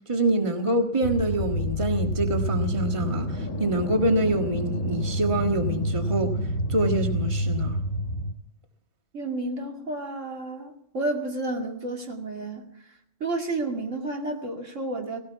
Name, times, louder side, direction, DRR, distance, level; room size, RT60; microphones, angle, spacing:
voice 1, 0.1-6.4 6.7-7.8, right 1 dB, 25° right, 1.7 m, -25 dB
sound 1, 1.0-8.3, equal, 90° left, 1.9 m, -28 dB
voice 2, 9.1-15.2, right 2 dB, 75° right, 2.7 m, -31 dB
18.0 x 17.5 x 4.7 m
omnidirectional pair, 1.3 m